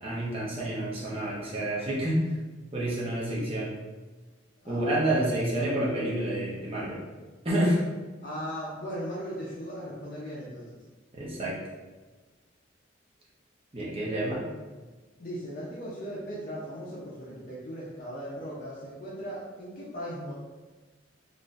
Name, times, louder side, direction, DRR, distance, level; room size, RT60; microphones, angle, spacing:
voice 1, 0.0-2.3 2.7-3.8 4.7-7.0 7.4-7.8 11.1-11.6 13.7-14.4, right 1 dB, 30° right, -6 dB, 0.8 m, -28 dB
voice 2, 3.3-3.6 4.6-4.9 8.2-10.8 15.2-20.3, equal, 45° left, -7 dB, 0.6 m, -38 dB
4.1 x 2.6 x 2.4 m, 1.3 s
head